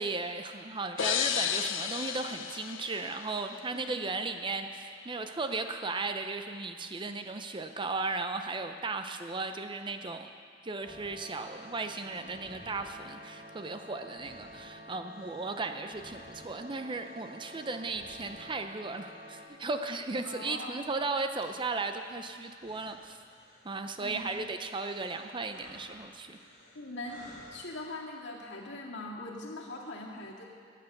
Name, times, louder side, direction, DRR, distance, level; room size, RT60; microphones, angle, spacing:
voice 1, 0.0-10.3 10.6-23.2 23.6-26.4, right 3 dB, 25° right, 7 dB, 0.6 m, -36 dB
sound 1, 1.0-3.8, left 9 dB, 85° left, 0.6 m, -33 dB
sound 2, 10.8-19.4, equal, 75° right, 4.0 m, -50 dB
sound 3, 10.9-27.8, left 1 dB, 45° left, 2.9 m, -58 dB
voice 2, 20.2-20.8 24.0-24.3 26.7-30.4, left 2 dB, 65° left, -2 dB, 2.2 m, -41 dB
15.0 x 9.3 x 6.6 m, 2.2 s
head